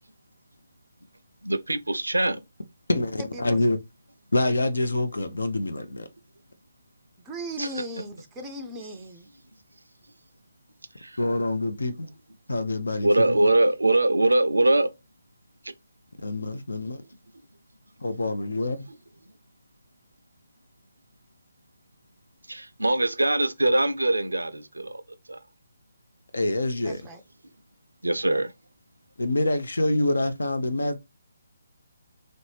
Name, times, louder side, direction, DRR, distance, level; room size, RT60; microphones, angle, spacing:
voice 1, 1.4-2.4 7.6-7.8 11.0-11.2 13.0-14.9 15.6-15.7 22.5-25.0 25.3-25.4 28.0-28.5, right 2 dB, 75° right, 0.5 m, -23 dB
voice 2, 2.9-3.8 4.3-6.1 11.2-12.1 12.5-13.3 16.2-17.0 18.0-18.9 26.3-27.0 29.2-31.0, left 2 dB, 70° left, 0.5 m, -26 dB
voice 3, 7.3-9.3 26.8-27.2, right 1 dB, 15° right, 0.4 m, -37 dB
3.1 x 2.6 x 3.2 m
figure-of-eight pair, 140°, 0 cm